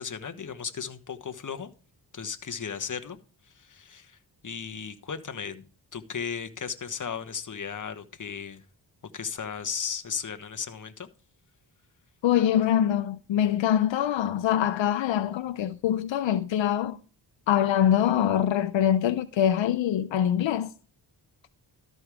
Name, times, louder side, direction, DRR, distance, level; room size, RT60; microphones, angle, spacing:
voice 1, 0.0-1.7 2.1-3.2 3.5-5.6 5.9-8.6 9.1-11.1, left 6 dB, 45° left, 1.3 m, -35 dB
voice 2, 12.2-17.0 17.5-20.7, left 10 dB, 85° left, 0.7 m, -24 dB
13.0 x 5.3 x 4.9 m
cardioid pair, 75°, 44 cm